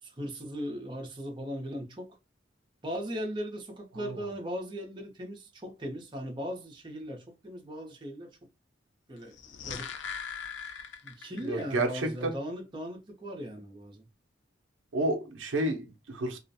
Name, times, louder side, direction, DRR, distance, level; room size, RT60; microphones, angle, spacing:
voice 1, 0.0-2.2 2.8-8.4 9.1-9.9 11.0-14.1, equal, 25° right, 0.6 m, -38 dB
sound 1, 9.2-11.7 12.0-12.1, left 7 dB, 70° left, 0.4 m, -40 dB
voice 2, 11.4-12.3 14.9-16.4, right 2 dB, 90° right, 0.5 m, -31 dB
2.4 x 2.1 x 2.6 m
head